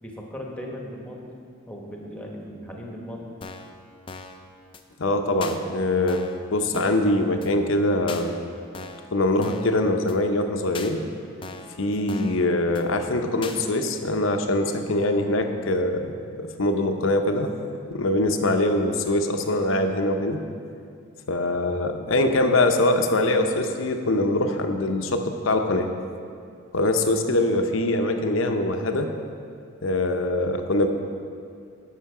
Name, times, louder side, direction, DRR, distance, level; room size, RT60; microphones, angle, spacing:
voice 1, 0.0-1.3 1.7-3.3, equal, 5° left, -1 dB, 1.1 m, -37 dB
sound 1, 3.4-3.7 4.1-4.4 4.7-4.8 5.4-5.6 6.1-6.4 6.7-7.1 7.4-7.5 8.1-8.2 8.7-9.1 9.4-9.7 10.1-10.2 10.7-10.9 11.4-11.7 12.1-12.4 12.7-12.8 13.4-13.6, left 4 dB, 25° left, 0.4 m, -39 dB
voice 2, 5.0-8.3 9.1-11.0 11.8-16.1 16.4-17.5 17.9-20.4 21.3-25.9 26.7-29.1 29.8-30.9, left 1 dB, 70° left, 6 dB, 0.7 m, -23 dB
11.5 x 6.3 x 4.8 m, 2.4 s
head